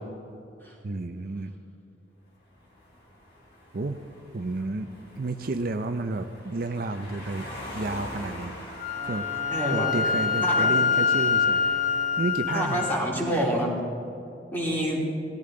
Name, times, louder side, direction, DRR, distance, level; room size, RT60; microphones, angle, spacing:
voice 1, 0.8-1.5 3.7-4.0 4.3-4.9 5.2-7.5 7.7-8.5 9.0-9.4 9.7-11.7 12.2-12.9, right 2 dB, 55° right, 7 dB, 0.6 m, -31 dB
sound 1, 2.4-12.7, left 1 dB, 60° left, 3.8 m, -44 dB
Wind instrument woodwind instrument, 8.8-13.0, left 6 dB, 45° left, 0.7 m, -25 dB
sound 2, 8.9-12.5, right 2 dB, 20° right, 0.8 m, -42 dB
voice 2, 9.5-9.9 10.4-10.7 12.5-13.8 14.5-15.0, equal, 10° left, -4 dB, 3.2 m, -27 dB
18.5 x 13.5 x 3.8 m, 2.7 s
head